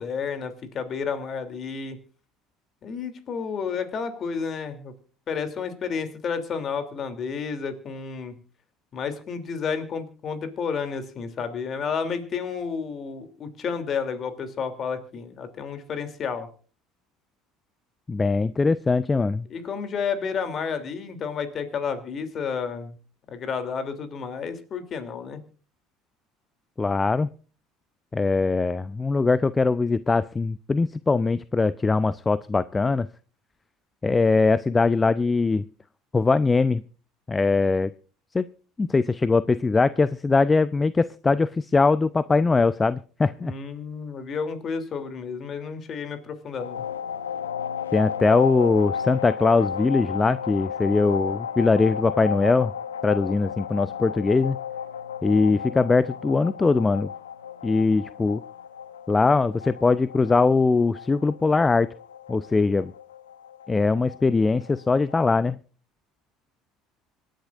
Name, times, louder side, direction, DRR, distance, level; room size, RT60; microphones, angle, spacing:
voice 1, 0.0-2.0 2.8-4.9 5.3-8.3 8.9-16.5 19.5-23.0 23.3-25.4 43.4-46.8, left 6 dB, 45° left, 9 dB, 2.9 m, -31 dB
voice 2, 18.1-19.4 26.8-27.3 28.1-33.1 34.0-35.7 36.1-36.8 37.3-37.9 38.3-38.5 38.8-43.5 47.9-52.7 53.0-54.6 55.2-57.1 57.6-58.4 59.1-61.9 62.3-62.9 63.7-65.6, left 3 dB, 20° left, 16 dB, 0.5 m, -21 dB
sound 1, 46.6-65.2, left 7 dB, 90° left, 0.6 m, -34 dB
26.0 x 10.5 x 2.5 m, 0.38 s
hypercardioid pair, 70°, 0 cm